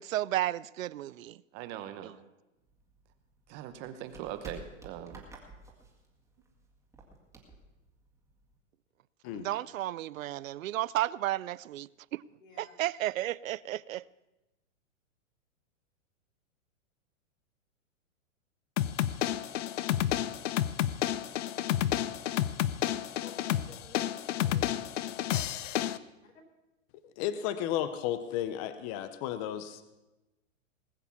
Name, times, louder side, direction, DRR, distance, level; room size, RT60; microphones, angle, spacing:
voice 1, 0.0-1.4 2.0-2.2 9.3-12.2 12.6-14.1, right 14 dB, 90° right, 0.5 m, -33 dB
voice 2, 1.5-2.1 3.5-5.2, right 11 dB, 25° right, 0.9 m, -41 dB
sound 1, 2.6-8.6, right 2 dB, 10° right, 2.0 m, -52 dB
voice 3, 12.4-12.7 23.1-24.9 26.2-26.3, left 4 dB, 90° left, 4.0 m, -53 dB
sound 2, 18.8-26.0, left 12 dB, 65° left, 0.7 m, -30 dB
voice 4, 27.2-29.8, left 11 dB, 25° left, 0.6 m, -33 dB
19.5 x 7.1 x 7.0 m
hypercardioid pair, 150°, 39 cm